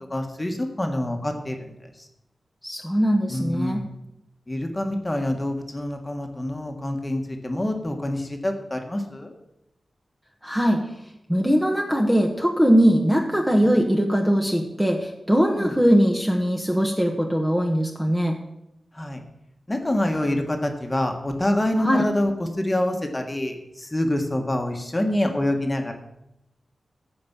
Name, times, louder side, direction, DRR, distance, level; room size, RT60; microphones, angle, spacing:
voice 1, 0.1-1.7 3.3-3.8 4.5-9.3 13.6-13.7 15.5-15.7 18.9-19.2 19.7-25.9, left 1 dB, 15° left, 3 dB, 1.5 m, -26 dB
voice 2, 2.6-3.8 10.4-10.9 11.3-18.4 21.8-22.0, equal, 5° right, 1 dB, 1.1 m, -21 dB
14.5 x 5.3 x 7.3 m, 0.86 s
wide cardioid pair, 135°, 0 cm